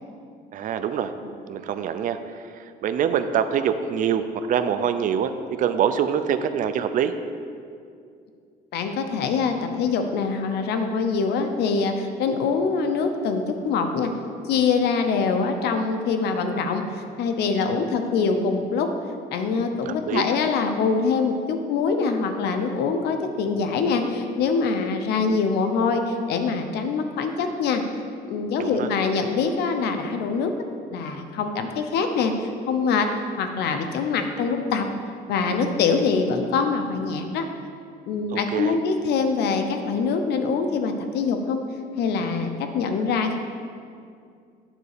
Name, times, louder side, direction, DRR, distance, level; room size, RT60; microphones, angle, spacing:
voice 1, 0.5-1.1 1.5-2.2 2.8-7.1 19.9-20.3 28.6-28.9 38.3-38.8, right 8 dB, 50° right, 9 dB, 0.5 m, -24 dB
voice 2, 8.7-14.1 14.4-18.9 19.3-27.8 28.3-30.5 30.9-33.1 33.4-34.8 35.3-37.4 38.1-41.6 42.0-43.4, left 5 dB, 75° left, 6 dB, 0.8 m, -24 dB
9.0 x 4.0 x 6.6 m, 2.3 s
cardioid pair, 110°, 17 cm